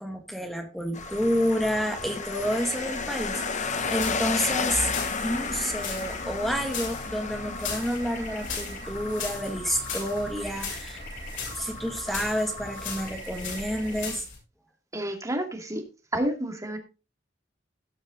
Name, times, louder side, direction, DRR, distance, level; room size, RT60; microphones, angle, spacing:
voice 1, 0.0-4.9 5.2-11.0 11.6-14.2, equal, ahead, 2.1 m, -29 dB
sound 1, 0.9-14.1, equal, 55° left, 6.0 m, -41 dB
sound 2, 0.9-14.1, left 5 dB, 40° left, 1.0 m, -34 dB
sound 3, 3.8-14.4, left 4 dB, 75° left, 6.7 m, -38 dB
voice 2, 14.9-15.8 16.1-16.8, right 1 dB, 20° right, 2.4 m, -29 dB
17.5 x 6.1 x 3.8 m
head